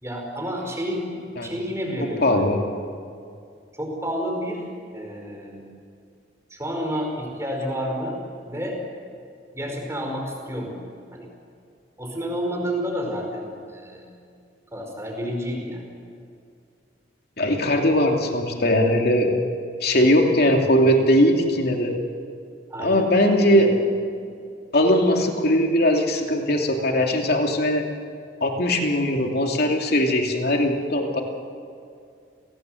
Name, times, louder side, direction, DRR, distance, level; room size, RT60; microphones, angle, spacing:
voice 1, 0.0-2.4 3.8-4.6 4.9-5.6 6.5-8.2 8.4-8.8 9.5-10.8 11.1-11.3 12.0-14.1 14.7-15.8 22.7-23.8, equal, 15° right, 1 dB, 4.9 m, -30 dB
voice 2, 2.2-2.6 17.4-19.3 19.8-21.9 22.8-23.7 24.7-27.8 28.4-31.2, left 1 dB, 55° left, 2 dB, 2.9 m, -20 dB
30.0 x 18.0 x 7.9 m, 2.4 s
head